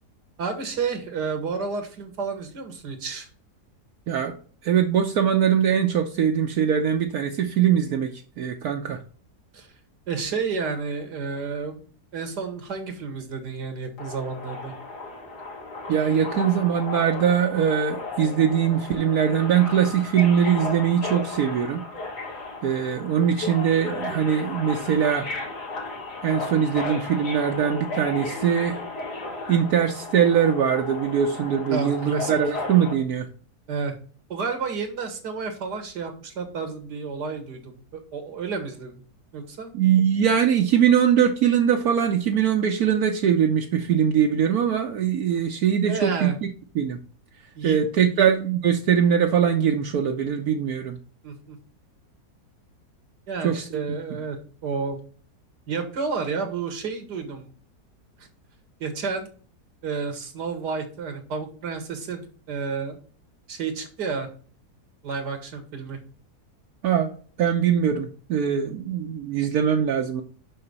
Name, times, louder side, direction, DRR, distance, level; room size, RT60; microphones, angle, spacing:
voice 1, 0.4-3.3 9.5-9.7 10.1-11.8 12.1-14.7 31.7-32.4 33.7-34.0 34.3-39.0 39.3-39.7 45.9-46.4 47.6-48.3 51.2-51.6 53.3-54.4 54.6-55.0 55.7-57.5 58.2-58.3 58.8-59.3 59.8-63.0 63.5-64.3 65.0-66.0, right 5 dB, 85° right, 7 dB, 2.1 m, -31 dB
voice 2, 4.6-8.1 8.4-9.0 15.9-21.8 22.6-25.3 26.2-28.8 29.5-33.3 39.7-46.3 46.7-47.0 47.6-51.0 53.4-53.6 66.8-67.1 67.4-70.2, right 8 dB, 70° right, 3 dB, 1.2 m, -22 dB
Subway metro underground, 14.0-32.9, left 2 dB, 80° left, 2.3 m, -34 dB
5.8 x 5.7 x 5.4 m, 0.41 s
omnidirectional pair, 1.7 m